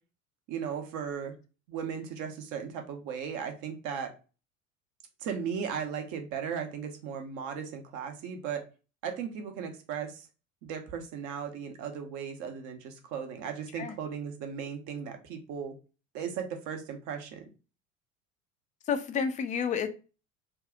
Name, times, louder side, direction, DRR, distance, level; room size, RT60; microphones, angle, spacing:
voice 1, 0.5-1.3 1.7-4.1 5.2-8.6 9.0-10.3 10.6-15.7 16.1-17.5, right 7 dB, 45° right, 5 dB, 0.9 m, -36 dB
voice 2, 18.9-19.9, left 6 dB, 20° left, 9 dB, 0.4 m, -30 dB
2.8 x 2.3 x 3.6 m, 0.32 s
figure-of-eight pair, 70°, 41 cm